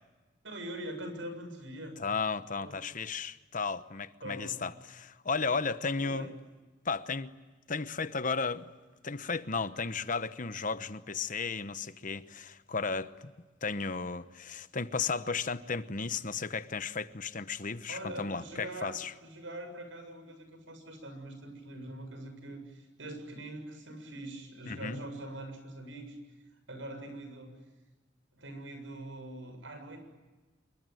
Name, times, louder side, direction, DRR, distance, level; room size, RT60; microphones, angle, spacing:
voice 1, 0.4-2.1 2.6-2.9 4.2-4.6 5.9-6.3 17.9-18.9 19.2-26.2 26.7-27.5 28.3-30.0, right 1 dB, 85° right, 7.2 m, -43 dB
voice 2, 2.0-6.3 6.8-7.3 7.7-8.7 9.0-13.3 13.6-19.1 24.7-25.0, left 4 dB, 45° left, 1.0 m, -34 dB
28.0 x 23.0 x 9.3 m
head